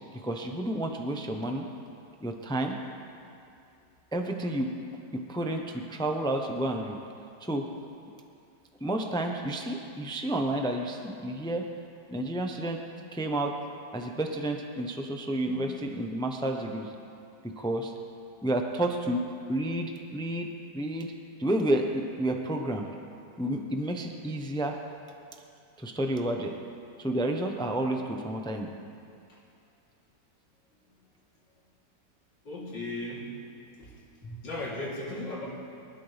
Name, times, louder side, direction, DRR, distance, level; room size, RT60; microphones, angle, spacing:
voice 1, 0.1-1.7 2.2-2.8 4.1-4.7 5.1-7.0 7.4-7.7 8.8-11.7 12.1-12.8 13.1-13.5 13.9-16.9 17.4-17.9 18.4-20.5 20.7-21.1 21.4-22.8 23.4-24.8 25.8-26.5 27.0-28.7, right 1 dB, 5° left, 3 dB, 0.3 m, -30 dB
voice 2, 32.4-33.4 33.8-35.5, left 1 dB, 85° left, -6 dB, 3.8 m, -37 dB
23.5 x 12.5 x 3.4 m, 2.5 s
omnidirectional pair, 1.9 m